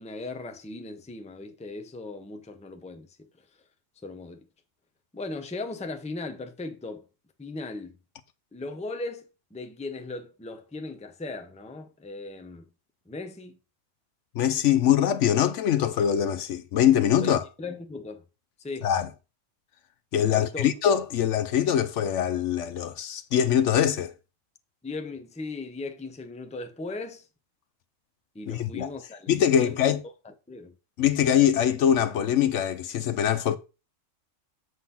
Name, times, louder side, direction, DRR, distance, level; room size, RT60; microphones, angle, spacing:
voice 1, 0.0-3.3 4.0-4.5 5.1-7.1 7.4-7.9 8.5-12.6 13.1-13.6 17.2-18.2 18.6-18.9 20.3-20.7 24.8-27.3 28.3-30.0 30.2-30.7, left 3 dB, 5° left, 0.6 m, -38 dB
voice 2, 14.3-17.4 18.8-19.1 20.1-24.1 28.5-28.9 29.3-30.0 31.0-33.6, left 9 dB, 70° left, 0.9 m, -23 dB
7.9 x 3.8 x 5.6 m
omnidirectional pair, 1.4 m